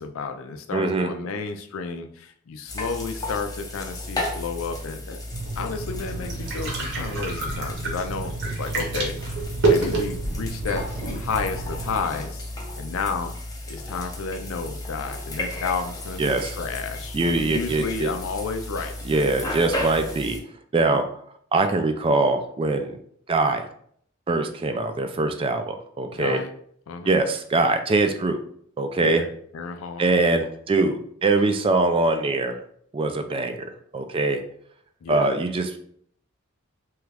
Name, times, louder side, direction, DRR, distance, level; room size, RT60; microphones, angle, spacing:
voice 1, 0.0-5.2 5.6-10.8 11.1-12.4 12.8-13.3 13.7-19.0 26.1-26.5 26.9-27.2 29.0-30.4 35.0-35.3, left 4 dB, 70° left, 6 dB, 0.4 m, -32 dB
voice 2, 0.7-1.1 16.2-16.6 17.1-18.1 19.1-20.4 20.7-21.0 21.5-23.0 23.3-23.7 24.3-26.4 27.1-28.4 28.8-29.2 30.0-32.6 32.9-34.4 35.1-35.8, right 3 dB, 25° right, 7 dB, 0.3 m, -23 dB
sound 1, 2.7-20.4, left 1 dB, 20° left, 0.6 m, -34 dB
sound 2, 5.3-12.0, right 3 dB, 60° right, 0.9 m, -28 dB
3.0 x 2.4 x 3.3 m, 0.63 s
head